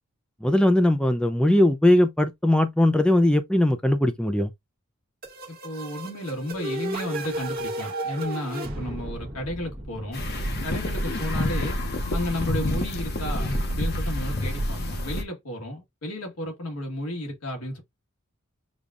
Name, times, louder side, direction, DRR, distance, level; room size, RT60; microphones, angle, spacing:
voice 1, 0.4-4.5, left 1 dB, 5° left, 0.3 m, -20 dB
sound 1, 5.2-10.9, right 1 dB, 45° right, 1.1 m, -34 dB
voice 2, 5.5-10.2 10.6-11.8 12.1-17.8, left 1 dB, 90° left, 1.5 m, -33 dB
sound 2, 10.1-15.2, left 1 dB, 45° left, 0.8 m, -28 dB
6.8 x 2.4 x 2.4 m
head